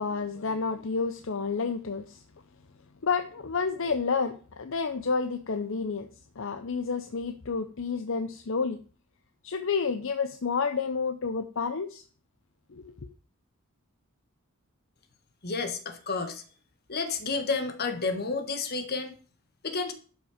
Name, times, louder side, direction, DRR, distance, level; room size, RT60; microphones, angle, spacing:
voice 1, 0.0-2.2 3.0-6.1 6.4-8.8 9.4-12.0 12.7-12.9, left 5 dB, 65° left, 0.7 m, -30 dB
voice 2, 15.4-16.4 16.9-19.1 19.6-19.9, left 4 dB, 50° left, 1.6 m, -30 dB
11.5 x 5.8 x 5.0 m
head